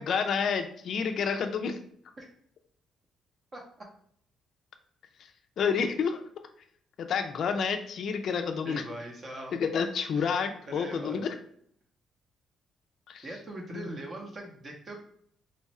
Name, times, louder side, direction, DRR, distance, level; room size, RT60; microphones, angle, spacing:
voice 1, 0.0-1.8 5.6-6.2 7.0-8.8 9.5-11.3 13.1-13.2 13.7-13.9, left 6 dB, 50° left, 6 dB, 0.4 m, -29 dB
voice 2, 8.6-9.6 10.2-10.3 10.7-11.3 13.2-15.0, right 1 dB, 30° right, 1 dB, 0.8 m, -41 dB
3.1 x 2.4 x 4.1 m, 0.64 s
cardioid pair, 170°, 0 cm